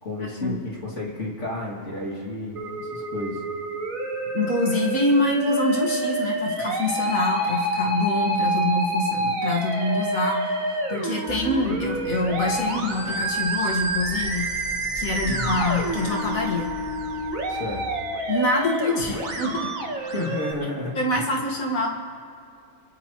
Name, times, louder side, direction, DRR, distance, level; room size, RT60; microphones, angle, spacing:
voice 1, 0.0-2.6 2.9-3.4 15.2-15.6 17.5-17.8 20.1-21.3, left 2 dB, 60° left, -4 dB, 3.0 m, -31 dB
Musical instrument, 2.6-20.5, right 2 dB, 70° right, 1.9 m, -28 dB
voice 2, 4.3-10.4 10.9-14.5 15.0-16.7 18.3-19.7 20.9-21.9, left 2 dB, 75° left, -1 dB, 2.2 m, -25 dB
sound 1, 11.3-17.7, equal, 5° right, 0.8 m, -42 dB
27.0 x 13.0 x 3.1 m, 2.4 s
omnidirectional pair, 1.4 m